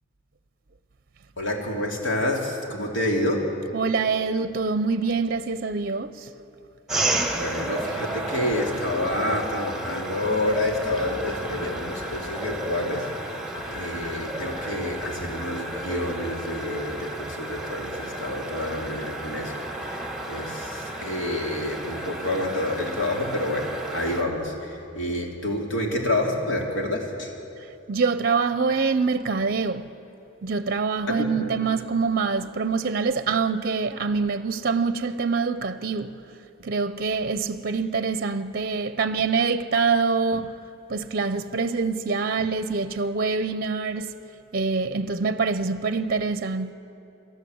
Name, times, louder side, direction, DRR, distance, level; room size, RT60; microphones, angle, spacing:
voice 1, 1.4-3.4 7.3-13.1 13.7-27.3 31.2-31.5, left 1 dB, 70° left, 3.0 m, -28 dB
voice 2, 3.7-6.3 27.9-29.9 30.4-36.1 36.6-40.5 40.9-44.1 44.5-46.7, right 4 dB, 50° right, 0.6 m, -25 dB
Suburban Night Ambience, 6.9-24.2, right 1 dB, ahead, 1.8 m, -32 dB
28.5 x 13.0 x 7.9 m
head